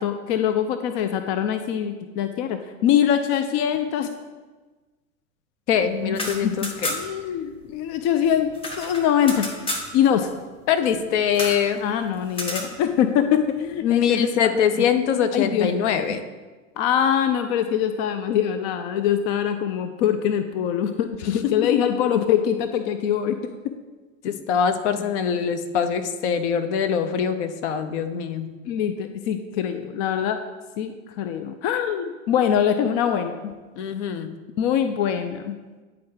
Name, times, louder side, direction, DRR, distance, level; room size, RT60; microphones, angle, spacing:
voice 1, 0.0-4.1 5.9-8.5 8.8-9.5 9.9-10.3 11.8-14.7 15.3-15.7 16.8-23.4 28.6-30.4 30.8-33.5 34.6-35.6, left 9 dB, 35° left, 8 dB, 0.4 m, -23 dB
voice 2, 5.7-6.9 10.7-11.8 13.8-16.2 21.4-21.5 24.2-28.5 33.8-34.3, left 7 dB, 55° left, 9 dB, 0.8 m, -23 dB
sound 1, 6.0-7.3 7.5-7.6 7.9-9.9 11.3-11.7 12.3-12.7, left 1 dB, 15° left, 0.9 m, -31 dB
9.4 x 4.4 x 3.8 m, 1.3 s
figure-of-eight pair, 90°, 41 cm